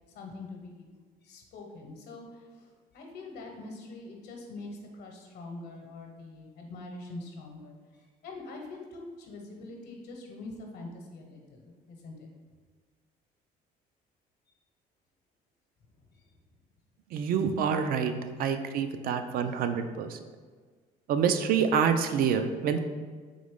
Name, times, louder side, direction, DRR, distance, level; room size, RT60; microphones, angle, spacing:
voice 1, 0.1-0.9 1.2-12.3 16.1-16.2, left 2 dB, 70° left, 1 dB, 0.9 m, -44 dB
voice 2, 17.1-18.1 18.4-20.2 21.1-22.8, right 7 dB, 60° right, 8 dB, 0.4 m, -27 dB
3.8 x 3.1 x 3.5 m, 1.6 s
cardioid pair, 110°, 17 cm